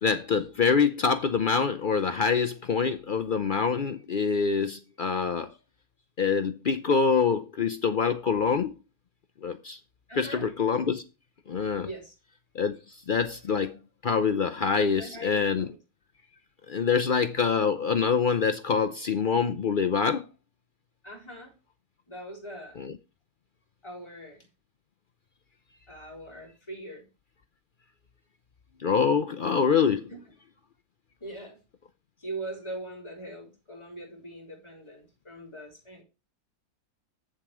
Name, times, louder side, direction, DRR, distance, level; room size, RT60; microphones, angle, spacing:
voice 1, 0.0-5.5 6.2-8.7 9.4-9.8 10.2-11.0 11.5-11.9 12.5-12.8 13.1-13.7 14.0-15.7 16.7-20.2 22.8-22.9 28.8-30.1, left 5 dB, 85° left, 0.4 m, -25 dB
voice 2, 10.1-10.5 11.8-12.1 14.8-15.8 21.0-21.6 22.1-22.8 23.8-24.5 25.9-27.1 30.1-30.2 31.2-31.6 32.2-36.0, right 1 dB, 15° left, 3.9 m, -41 dB
8.0 x 7.5 x 4.7 m
omnidirectional pair, 1.8 m